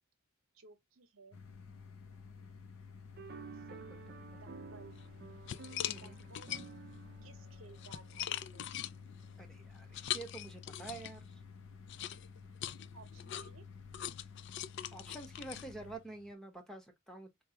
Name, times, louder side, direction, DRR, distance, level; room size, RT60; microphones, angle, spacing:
voice 1, 0.5-1.4 3.5-4.0 4.3-5.0 5.9-6.5 7.2-8.7 12.9-13.6, right 4 dB, 80° right, 0.9 m, -58 dB
sound 1, 1.3-16.0, left 5 dB, 75° left, 0.7 m, -52 dB
sound 2, 3.2-8.7, right 6 dB, 50° right, 0.5 m, -53 dB
voice 2, 3.7-4.0 4.3-4.4 5.8-6.2 9.4-11.2 14.9-17.4, right 2 dB, ahead, 0.8 m, -48 dB
sound 3, 5.0-5.1 5.5-6.9 7.5-11.3 11.9-16.3, left 11 dB, 60° left, 0.3 m, -42 dB
4.5 x 2.3 x 2.8 m
head